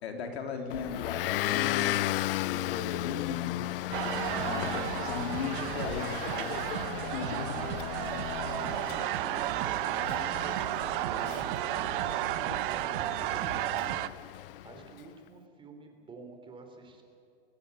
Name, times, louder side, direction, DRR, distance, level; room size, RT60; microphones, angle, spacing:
voice 1, 0.0-3.7 4.0-6.6 6.9-7.7, left 5 dB, 85° left, 4 dB, 3.9 m, -38 dB
Motor vehicle (road) / Engine, 0.7-14.9, left 16 dB, 60° left, 0.5 m, -35 dB
sound 1, 3.9-14.1, right 15 dB, 55° right, 0.9 m, -33 dB
Laughter, 4.2-6.9 9.7-10.5 10.7-11.3, right 8 dB, 35° right, 3.4 m, -52 dB
voice 2, 8.3-14.0 14.6-17.0, right 3 dB, 15° right, 4 dB, 3.5 m, -50 dB
24.0 x 19.0 x 7.0 m, 2.6 s
hypercardioid pair, 140°, 31 cm